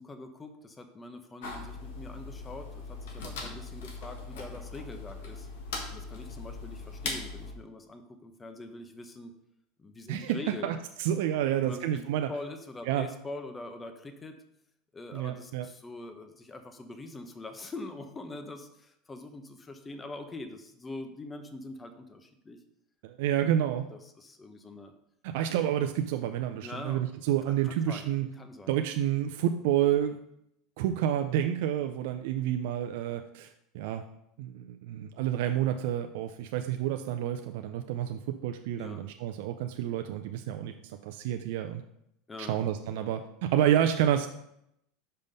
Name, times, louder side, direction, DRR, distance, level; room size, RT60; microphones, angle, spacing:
voice 1, 0.0-5.5 5.9-9.4 9.8-10.7 11.4-12.0 12.3-14.4 14.9-22.6 23.9-24.9 26.6-27.0 27.6-28.1 28.3-28.7 38.8-39.1 42.3-42.5, left 2 dB, 20° left, 7 dB, 0.8 m, -43 dB
sound 1, 1.4-7.5, left 3 dB, 80° left, 1.6 m, -40 dB
voice 2, 10.1-12.3 12.9-13.1 15.1-15.7 23.0-23.9 25.2-28.3 28.7-30.2 30.8-34.0 34.4-41.8 42.4-44.3, right 11 dB, 70° right, 6 dB, 0.4 m, -29 dB
5.5 x 5.2 x 5.3 m, 0.78 s
supercardioid pair, 115°, 0 cm